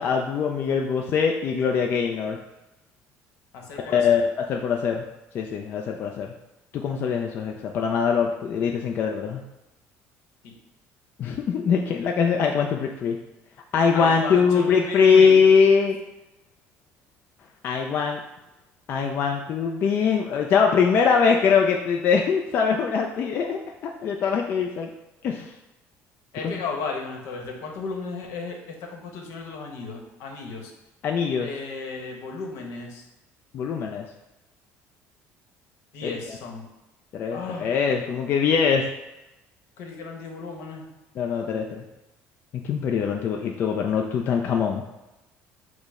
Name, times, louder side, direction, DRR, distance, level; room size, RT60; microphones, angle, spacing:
voice 1, 0.0-2.4 3.9-5.0 5.3-6.3 6.7-9.4 11.2-13.2 13.7-16.0 17.6-18.2 18.9-24.9 25.2-25.5 31.0-31.5 33.5-34.1 37.1-38.8 41.2-41.8 42.6-44.8, left 6 dB, 40° left, 1 dB, 0.3 m, -22 dB
voice 2, 3.5-4.2 10.4-10.5 13.9-15.4 26.3-30.7 31.4-33.0 35.9-36.7 37.3-37.8 39.8-40.9, left 4 dB, 75° left, 1 dB, 0.9 m, -34 dB
5.2 x 2.0 x 4.7 m, 0.99 s
cardioid pair, 155°, 5 cm